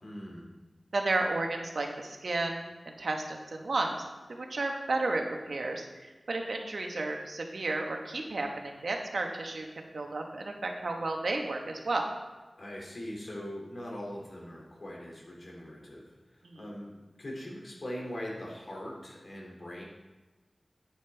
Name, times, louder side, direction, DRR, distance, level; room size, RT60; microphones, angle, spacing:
voice 1, 0.0-0.5 12.6-16.1 16.6-16.9 17.2-19.8, equal, 60° left, -2 dB, 2.5 m, -41 dB
voice 2, 0.9-4.0 4.3-12.1 16.4-16.6, right 2 dB, 80° right, 2 dB, 1.2 m, -33 dB
9.0 x 8.8 x 3.4 m, 1.2 s
wide cardioid pair, 75°, 0 cm